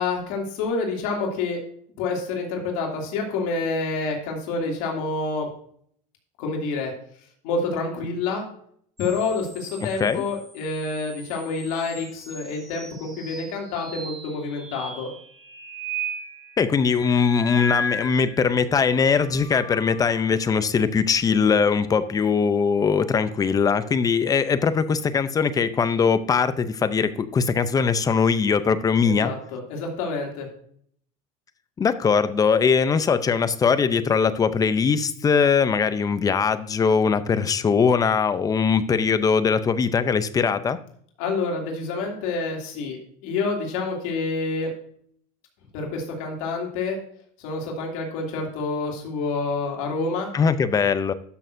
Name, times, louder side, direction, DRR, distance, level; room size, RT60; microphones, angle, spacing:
voice 1, 0.0-1.6 2.0-5.5 6.4-6.9 7.4-8.5 9.0-15.1 29.0-30.5 41.2-44.7 45.7-47.0 47.4-50.3, left 3 dB, 75° left, 0 dB, 2.7 m, -28 dB
sound 1, 9.0-18.5 19.0-20.4 22.2-23.3, equal, ahead, 2.7 m, -37 dB
voice 2, 16.6-29.3 31.8-40.8 50.3-51.1, left 6 dB, 20° left, 13 dB, 0.5 m, -21 dB
12.5 x 6.4 x 2.6 m, 0.63 s
cardioid pair, 140°, 18 cm